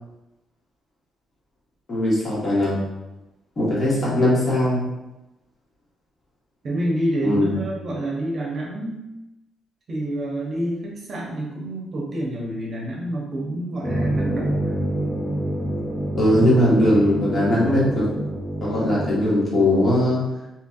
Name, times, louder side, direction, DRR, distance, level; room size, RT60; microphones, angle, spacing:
voice 1, 1.9-2.8 3.6-4.8 7.2-7.5 16.1-18.1 18.6-20.2, left 1 dB, 40° left, -7 dB, 1.4 m, -19 dB
voice 2, 6.6-9.0 9.9-14.8, right 1 dB, 50° right, -3 dB, 0.8 m, -28 dB
sound 1, 13.8-19.1, right 1 dB, 20° left, 0.6 m, -26 dB
2.9 x 2.5 x 2.4 m, 0.98 s
cardioid pair, 90°, 0 cm